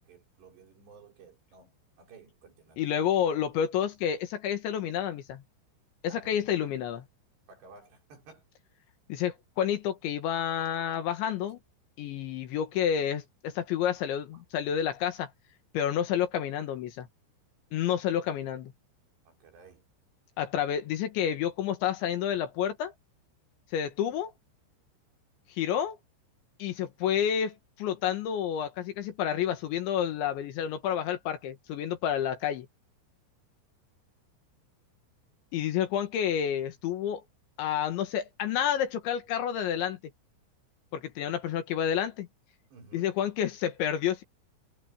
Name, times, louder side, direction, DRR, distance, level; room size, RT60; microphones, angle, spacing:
voice 1, 0.0-3.2 6.1-6.8 7.5-8.5 14.3-14.4 19.3-19.8 35.9-36.5 42.7-43.2, right 4 dB, 60° right, 6.6 m, -55 dB
voice 2, 2.8-5.4 6.0-7.0 9.1-11.6 12.0-15.3 15.7-17.1 17.7-18.7 20.4-22.9 23.7-24.3 25.5-26.0 26.6-32.7 35.5-37.2 37.6-40.0 40.9-42.3 42.9-44.2, left 9 dB, 70° left, 3.9 m, -29 dB
omnidirectional pair, 5.7 m